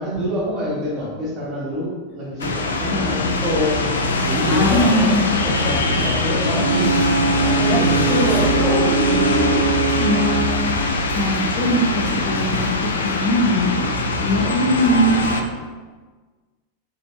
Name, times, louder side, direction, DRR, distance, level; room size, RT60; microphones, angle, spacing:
voice 1, 0.0-3.8 4.3-7.0 7.3-9.5 14.3-14.9, equal, 30° right, -6 dB, 1.1 m, -26 dB
sound 1, 2.4-15.4, left 3 dB, 70° left, 0.3 m, -22 dB
sound 2, 2.4-2.9 4.8-5.4 7.0-7.6 9.9-10.4 12.5-13.0, right 1 dB, 10° right, 0.8 m, -36 dB
voice 2, 2.9-3.3 4.5-5.4 7.7-7.8 8.1-8.3 8.6-9.6 10.0-15.4, left 1 dB, 35° left, -2 dB, 0.6 m, -22 dB
Ocean / Boat Water vehicle / Alarm, 6.5-14.0, right 6 dB, 65° right, 0.4 m, -24 dB
3.0 x 2.7 x 3.0 m, 1.4 s
figure-of-eight pair, 90°, 0 cm